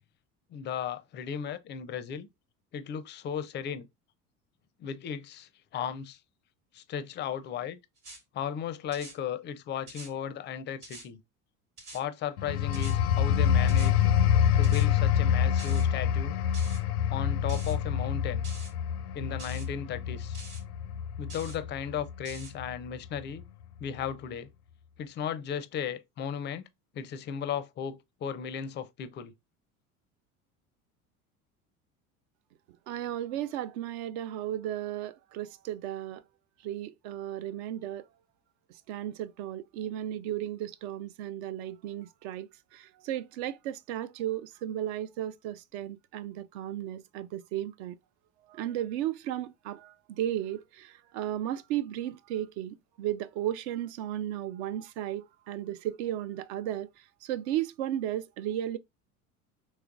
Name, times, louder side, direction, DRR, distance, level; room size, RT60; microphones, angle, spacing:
voice 1, 0.5-2.3 2.7-3.9 4.8-6.2 6.7-7.8 8.3-11.2 11.9-14.1 14.6-16.4 17.1-18.4 19.1-20.4 21.2-23.4 23.8-24.5 25.0-26.7 26.9-29.3, left 8 dB, 25° left, 0.4 m, -35 dB
sound 1, 8.0-8.2 8.9-9.2 9.9-10.1 10.8-11.1 11.8-12.0 12.7-13.0 13.7-13.9 14.6-14.9 15.6-15.8 16.5-16.8 17.5-17.8 18.4-18.7 19.4-19.7 20.3-20.6 21.3-21.6 22.2-22.5, right 2 dB, 85° right, 1.3 m, -46 dB
sound 2, 12.4-22.7 23.2-23.4, left 9 dB, 75° left, 0.6 m, -26 dB
voice 2, 32.9-36.2 36.6-38.1 38.7-48.0 48.5-58.8, right 12 dB, 50° right, 0.4 m, -35 dB
4.7 x 3.1 x 2.4 m
figure-of-eight pair, 70°, 45 cm